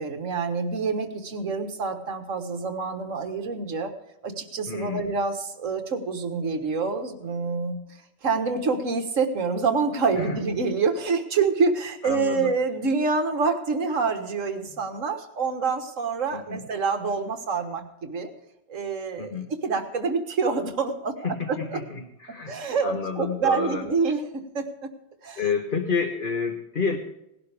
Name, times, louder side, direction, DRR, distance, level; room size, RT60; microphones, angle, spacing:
voice 1, 0.0-3.9 4.2-7.8 8.2-18.3 18.7-19.4 19.6-21.8 22.3-22.9 23.2-24.9 25.2-25.4, right 4 dB, 45° right, 7 dB, 1.6 m, -27 dB
voice 2, 4.7-5.1 10.1-10.4 12.0-12.5 14.7-14.8 16.3-16.6 19.2-19.5 21.2-23.8 25.4-27.0, left 5 dB, 35° left, 3 dB, 1.2 m, -30 dB
18.0 x 12.0 x 3.5 m, 0.81 s
omnidirectional pair, 2.0 m